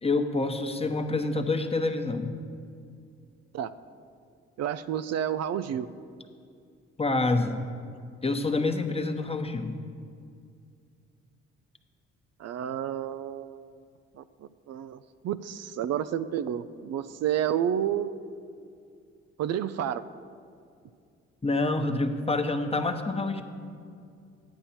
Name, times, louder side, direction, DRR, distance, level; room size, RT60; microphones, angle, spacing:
voice 1, 0.0-2.3 7.0-7.6 8.2-9.7 21.4-23.4, left 3 dB, 20° left, 6 dB, 1.0 m, -27 dB
voice 2, 4.6-5.9 12.4-13.8 14.2-14.3 14.7-15.0 15.2-18.1 19.4-20.1, right 10 dB, 60° right, 13 dB, 0.5 m, -30 dB
10.5 x 8.8 x 4.4 m, 2.3 s
supercardioid pair, 60°, 29 cm